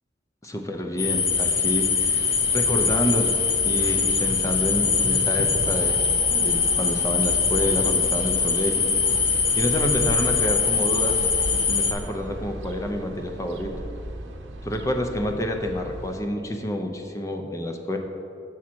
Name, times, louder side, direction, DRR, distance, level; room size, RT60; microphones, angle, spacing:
voice 1, 0.4-3.4 3.6-6.0 6.4-11.3 11.7-13.7 14.6-18.0, left 1 dB, 15° left, 4 dB, 0.5 m, -28 dB
sound 1, 1.0-11.9, left 5 dB, 60° left, 0.7 m, -22 dB
sound 2, 2.1-16.0, right 1 dB, 15° right, 0.7 m, -40 dB
sound 3, 2.1-16.2, right 1 dB, 85° right, 0.7 m, -40 dB
7.2 x 6.2 x 4.4 m, 2.7 s
head